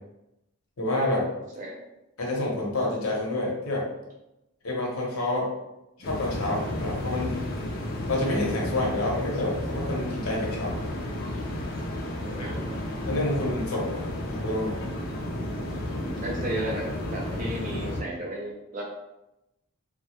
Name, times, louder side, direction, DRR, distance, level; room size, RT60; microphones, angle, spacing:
voice 1, 0.8-1.3 2.2-3.8 4.6-5.5 6.0-7.4 8.1-10.8 12.4-12.5 13.0-14.8, left 1 dB, 85° left, -3 dB, 0.7 m, -28 dB
sound 1, 6.0-18.0, left 1 dB, 45° left, 0.4 m, -32 dB
voice 2, 12.2-12.7 15.9-16.9 17.1-18.8, right 1 dB, 35° right, -2 dB, 0.3 m, -34 dB
2.2 x 2.0 x 2.8 m, 0.91 s
head